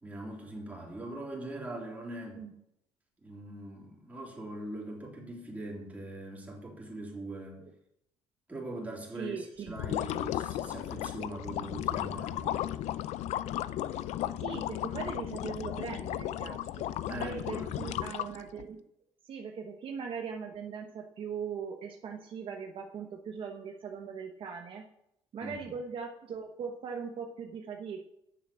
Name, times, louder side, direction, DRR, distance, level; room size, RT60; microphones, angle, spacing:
voice 1, 0.0-2.5 3.2-7.6 8.5-12.8 17.1-18.0 25.4-25.6, right 1 dB, 15° right, -2 dB, 3.3 m, -42 dB
voice 2, 9.1-10.0 14.4-18.8 19.2-24.9 25.3-28.0, right 6 dB, 50° right, 2 dB, 1.0 m, -40 dB
sound 1, 9.7-18.6, left 13 dB, 80° left, 0.4 m, -35 dB
9.5 x 7.0 x 7.5 m, 0.81 s
cardioid pair, 135°, 11 cm